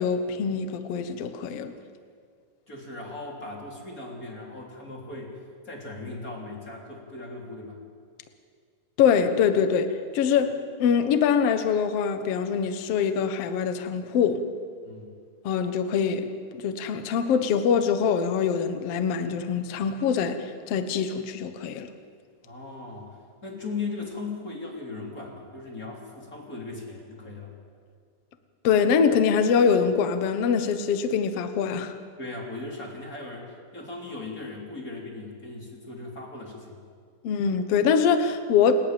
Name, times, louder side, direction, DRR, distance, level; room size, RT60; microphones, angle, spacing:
voice 1, 0.0-1.7 9.0-14.4 15.4-21.9 28.6-31.9 37.2-38.7, left 6 dB, 65° left, 8 dB, 1.6 m, -24 dB
voice 2, 2.7-5.4 5.7-7.8 14.8-15.1 22.4-27.5 32.2-36.8, left 3 dB, 25° left, -1 dB, 3.5 m, -38 dB
29.0 x 11.0 x 9.0 m, 2.1 s
omnidirectional pair, 4.3 m